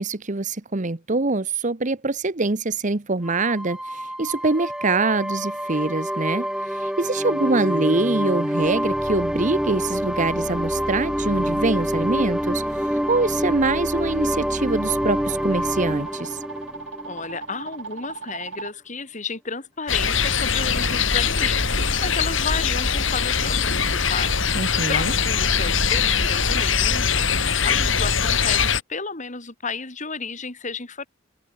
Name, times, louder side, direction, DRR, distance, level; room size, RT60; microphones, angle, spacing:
voice 1, 0.0-16.4 24.5-25.1, right 3 dB, 40° right, 1.1 m, -24 dB
sound 1, 3.2-17.7, equal, 5° right, 6.7 m, -26 dB
sound 2, 12.7-18.7, right 4 dB, 75° right, 6.9 m, -39 dB
voice 2, 17.0-31.0, left 4 dB, 40° left, 3.0 m, -33 dB
sound 3, 19.9-28.8, left 6 dB, 75° left, 5.4 m, -22 dB
head